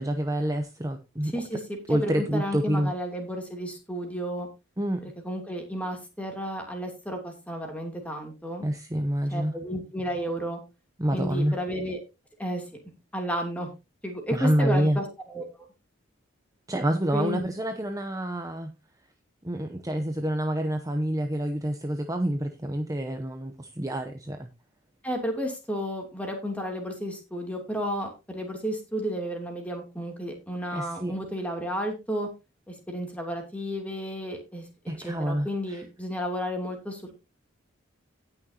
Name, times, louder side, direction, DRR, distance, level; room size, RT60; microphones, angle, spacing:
voice 1, 0.0-1.3 1.9-2.9 4.8-5.1 8.6-9.5 11.0-11.6 14.3-15.0 16.7-18.7 19.4-24.5 30.7-31.1 34.9-35.8, right 1 dB, 15° right, 6 dB, 0.8 m, -27 dB
voice 2, 1.2-4.5 5.0-8.7 9.3-10.6 11.1-12.0 12.4-12.7 13.1-13.7 14.0-15.7 17.1-17.4 25.0-32.3 32.7-34.7 35.0-37.2, equal, 5° left, 2 dB, 2.9 m, -32 dB
18.0 x 6.3 x 2.9 m, 0.26 s
head